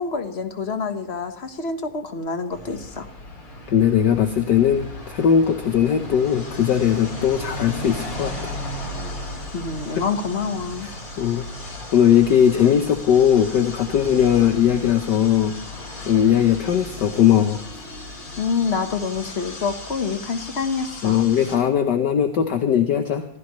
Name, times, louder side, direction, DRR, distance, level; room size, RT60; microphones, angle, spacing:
voice 1, 0.0-3.1 9.5-10.9 18.4-21.2, left 5 dB, 35° left, 7 dB, 1.3 m, -27 dB
sound 1, 2.5-21.5, left 1 dB, 75° left, 5.0 m, -35 dB
voice 2, 3.7-8.6 10.8-11.4 11.9-15.5 16.1-17.6 21.0-23.3, left 9 dB, 60° left, 6 dB, 1.5 m, -19 dB
26.0 x 16.0 x 3.1 m, 0.64 s
omnidirectional pair, 2.3 m